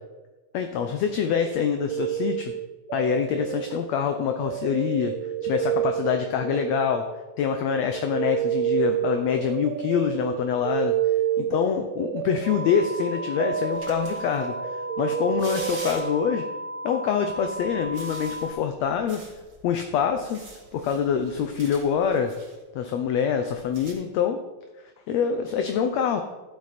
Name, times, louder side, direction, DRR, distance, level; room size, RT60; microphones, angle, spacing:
voice 1, 0.5-2.5 2.9-5.1 5.4-7.0 7.4-10.9 11.5-14.5 15.0-16.4 16.8-19.2 19.6-20.4 20.7-22.3 22.7-24.4 25.1-26.2, left 7 dB, 75° left, 6 dB, 1.6 m, -25 dB
sound 1, 1.4-7.4 7.6-16.3, right 11 dB, 80° right, 1.6 m, -30 dB
sound 2, 12.4-18.5, equal, 65° right, 2.5 m, -35 dB
sound 3, 13.7-14.5 15.2-16.3 17.2-22.6 23.4-23.9, right 2 dB, 35° right, 3.4 m, -45 dB
14.5 x 7.9 x 4.2 m, 1.2 s
omnidirectional pair, 3.7 m